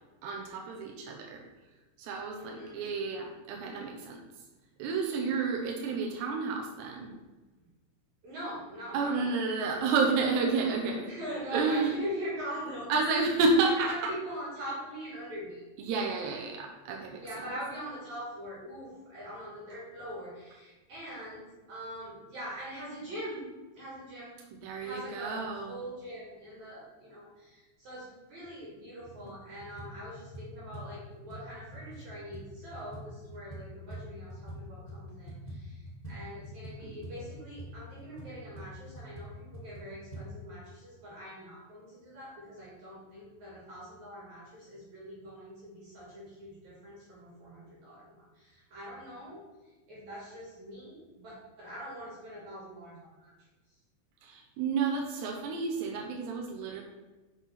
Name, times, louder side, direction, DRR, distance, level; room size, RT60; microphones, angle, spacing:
voice 1, 0.2-1.4 2.0-4.2 4.8-7.1 8.9-11.1 11.5-12.0 12.9-14.1 15.8-17.4 24.6-25.8 36.8-37.0 54.2-56.8, right 4 dB, 90° right, 1 dB, 3.3 m, -30 dB
voice 2, 2.3-2.9 8.2-9.3 11.1-13.3 13.6-15.6 17.2-23.5 23.7-24.3 24.8-53.3, equal, 50° right, -6 dB, 3.5 m, -43 dB
sound 1, 28.4-28.5 29.0-29.3 29.6-34.6 34.9-40.2, right 1 dB, 50° left, 0.5 m, -45 dB
8.0 x 6.2 x 5.8 m, 1.2 s
omnidirectional pair, 4.7 m